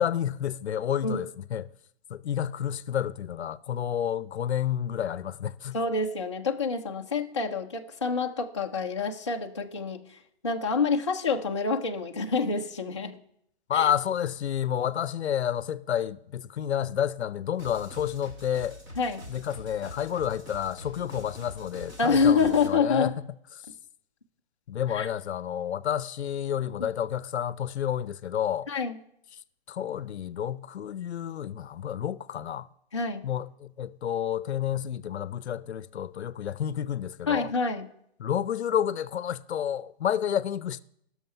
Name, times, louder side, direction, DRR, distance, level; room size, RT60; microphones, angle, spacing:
voice 1, 0.0-1.7 2.1-5.8 13.7-18.8 19.3-23.2 24.7-28.7 29.7-32.7 33.2-37.5 38.2-40.8, left 9 dB, 75° left, 0.6 m, -30 dB
voice 2, 5.7-10.2 10.4-13.2 13.7-13.9 19.0-19.2 22.0-23.1 24.9-25.1 28.7-28.9 32.9-33.3 37.3-37.9, left 4 dB, 25° left, 0.4 m, -27 dB
sound 1, 17.6-22.7, left 1 dB, 20° right, 1.2 m, -44 dB
16.0 x 6.5 x 5.5 m
hypercardioid pair, 180°, 33 cm